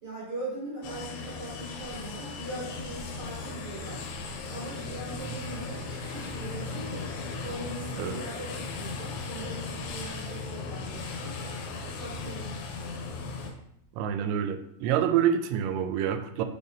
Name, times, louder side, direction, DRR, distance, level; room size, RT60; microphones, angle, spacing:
voice 1, 0.0-4.0 4.5-7.1 7.4-11.4 11.9-12.5, right 1 dB, 60° right, -7 dB, 1.1 m, -40 dB
sound 1, 0.8-13.5, left 4 dB, 80° left, 2.4 m, -37 dB
sound 2, 5.6-12.4, left 2 dB, 60° left, 2.2 m, -48 dB
voice 2, 14.0-16.4, right 9 dB, 85° right, 8 dB, 2.8 m, -27 dB
6.6 x 5.3 x 2.7 m, 0.76 s
omnidirectional pair, 5.3 m